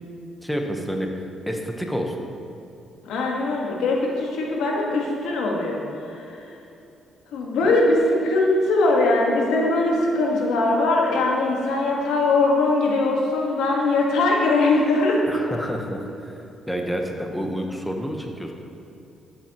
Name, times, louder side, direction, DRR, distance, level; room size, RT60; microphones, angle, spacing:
voice 1, 0.4-2.2 15.3-18.5, equal, 5° left, 2 dB, 1.0 m, -29 dB
voice 2, 3.0-5.8 6.1-6.4 7.3-15.4, left 2 dB, 90° left, -1 dB, 1.5 m, -21 dB
13.0 x 7.6 x 3.0 m, 2.7 s
cardioid pair, 90°, 0 cm